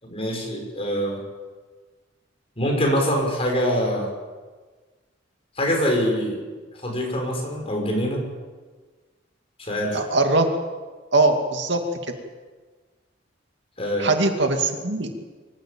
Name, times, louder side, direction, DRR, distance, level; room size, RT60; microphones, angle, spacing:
voice 1, 0.0-1.2 2.6-4.1 5.6-6.4 6.8-8.2 9.6-10.0 13.8-14.1, equal, 30° left, 0 dB, 6.7 m, -24 dB
voice 2, 9.9-10.5 11.1-11.8 14.0-15.2, right 2 dB, 65° right, 4 dB, 2.5 m, -21 dB
24.5 x 15.0 x 9.0 m, 1.4 s
head